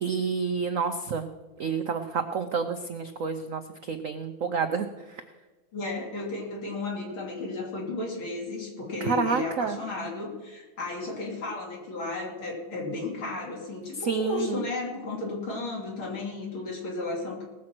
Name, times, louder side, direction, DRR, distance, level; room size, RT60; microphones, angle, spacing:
voice 1, 0.0-1.3 1.6-5.2 9.0-9.8 14.0-14.6, right 5 dB, 75° right, 8 dB, 0.7 m, -29 dB
voice 2, 5.7-17.4, left 2 dB, 75° left, -2 dB, 3.9 m, -33 dB
19.0 x 7.6 x 6.0 m, 1.2 s
omnidirectional pair, 2.3 m